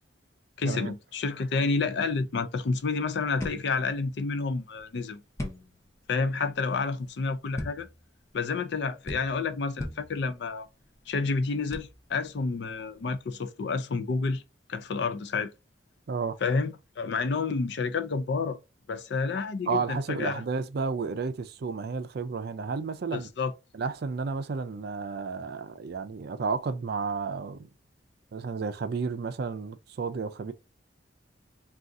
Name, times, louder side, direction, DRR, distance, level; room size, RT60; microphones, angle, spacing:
voice 1, 0.6-5.2 6.1-7.9 8.3-10.7 11.1-14.4 14.7-15.5 16.4-18.6 18.9-20.4 23.1-23.5, left 4 dB, 65° left, 0.5 m, -29 dB
sound 1, 2.6-13.3, left 1 dB, 15° left, 0.6 m, -43 dB
voice 2, 19.7-23.3 23.7-27.7 28.3-30.5, right 4 dB, 60° right, 0.4 m, -32 dB
2.6 x 2.4 x 3.5 m
head